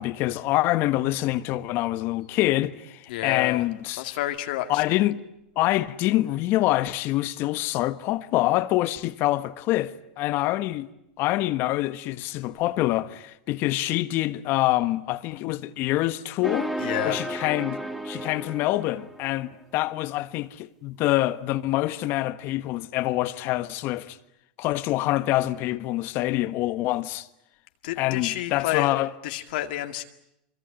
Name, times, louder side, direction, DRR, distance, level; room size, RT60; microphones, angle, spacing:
voice 1, 0.0-4.0 4.7-5.2 5.5-10.9 11.2-16.7 17.0-17.8 18.0-24.2 24.6-27.3 28.0-29.1, left 16 dB, 45° left, 1.4 m, -25 dB
voice 2, 3.1-3.7 3.9-5.0 16.8-17.3 27.8-28.9 29.2-30.0, left 15 dB, 65° left, 2.1 m, -30 dB
sound 1, 16.4-19.4, right 1 dB, 5° right, 2.6 m, -33 dB
25.0 x 24.0 x 9.1 m
hypercardioid pair, 115°, 5 cm